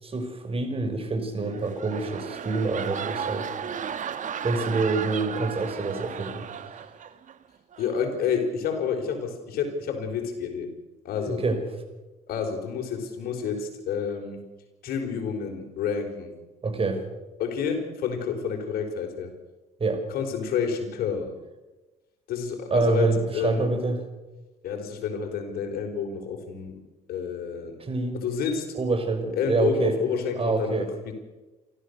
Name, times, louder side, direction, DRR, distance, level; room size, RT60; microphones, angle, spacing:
voice 1, 0.0-3.5 4.4-6.5 11.3-11.6 16.6-17.0 19.8-20.0 22.7-24.0 27.8-28.2 28.8-29.9 30.4-30.9, right 3 dB, 35° right, 7 dB, 5.7 m, -26 dB
sound 1, 1.4-7.4 7.7-8.0, right 8 dB, 50° right, 1.5 m, -35 dB
voice 2, 7.8-10.7 11.0-11.4 12.3-14.4 14.8-16.3 17.4-19.3 20.1-21.3 22.3-23.7 24.6-26.8 27.1-27.8 28.1-28.7 29.4-30.9, left 6 dB, 65° left, 4 dB, 4.8 m, -29 dB
28.5 x 14.0 x 7.0 m, 1.1 s
supercardioid pair, 65°, 17 cm